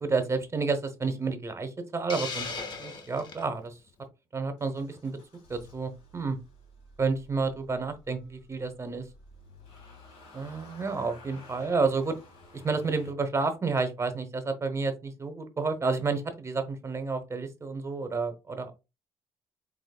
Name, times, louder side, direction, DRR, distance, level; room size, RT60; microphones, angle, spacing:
voice 1, 0.0-2.5 2.8-3.8 4.3-5.2 5.5-6.4 7.0-9.0 10.3-12.1 12.5-18.7, right 4 dB, 30° right, 8 dB, 0.8 m, -30 dB
Hiss, 2.1-3.4, left 4 dB, 50° left, 1.0 m, -37 dB
Motor vehicle (road) / Engine starting, 4.6-13.1, left 2 dB, 80° left, 1.7 m, -53 dB
5.6 x 2.9 x 2.3 m, 0.27 s
cardioid pair, 85°, 10 cm